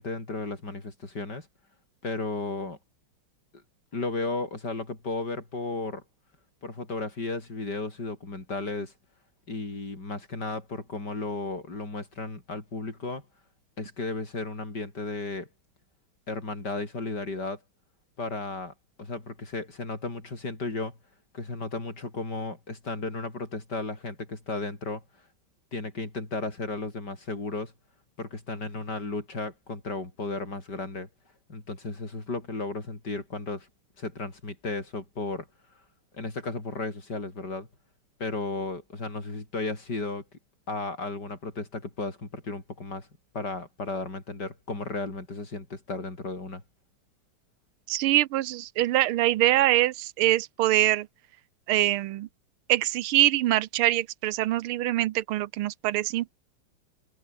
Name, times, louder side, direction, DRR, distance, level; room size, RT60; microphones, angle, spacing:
voice 1, 0.0-1.5 2.0-2.8 3.9-6.0 6.6-8.9 9.5-13.2 13.8-15.5 16.3-17.6 18.2-18.7 19.0-21.0 21.3-25.0 25.7-27.7 28.2-31.1 31.5-33.7 34.0-35.5 36.1-37.7 38.2-40.2 40.7-43.1 43.3-46.6, left 3 dB, 50° left, 6.1 m, -34 dB
voice 2, 47.9-51.1 51.7-52.3 52.7-56.4, right 15 dB, 85° right, 1.6 m, -24 dB
omnidirectional pair, 2.3 m